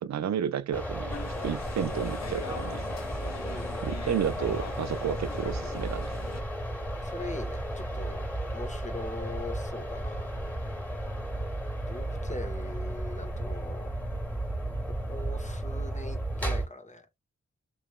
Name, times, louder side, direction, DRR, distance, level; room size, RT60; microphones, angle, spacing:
voice 1, 0.0-2.9 3.8-6.1, right 8 dB, 65° right, 0.5 m, -32 dB
sound 1, 0.7-16.7, right 1 dB, 5° left, 2.0 m, -34 dB
sound 2, 1.1-6.4, left 6 dB, 60° left, 0.8 m, -42 dB
voice 2, 3.4-3.7 4.4-4.5 7.0-8.3 8.5-10.3 11.9-13.9 15.1-17.1, left 2 dB, 25° left, 1.2 m, -41 dB
3.3 x 2.9 x 2.3 m
supercardioid pair, 40°, 30 cm